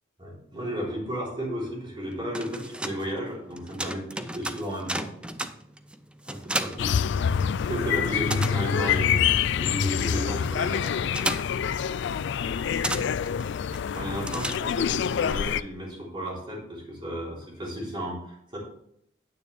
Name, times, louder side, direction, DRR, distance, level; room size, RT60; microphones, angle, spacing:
voice 1, 0.2-5.1 6.2-7.1 7.6-11.0 13.7-18.6, equal, 25° right, -4 dB, 3.5 m, -34 dB
sound 1, 2.1-7.7 8.0-15.0, right 1 dB, 5° right, 0.4 m, -35 dB
sound 2, 6.8-15.6, left 7 dB, 65° left, 0.3 m, -26 dB
9.5 x 8.7 x 3.4 m, 0.71 s
head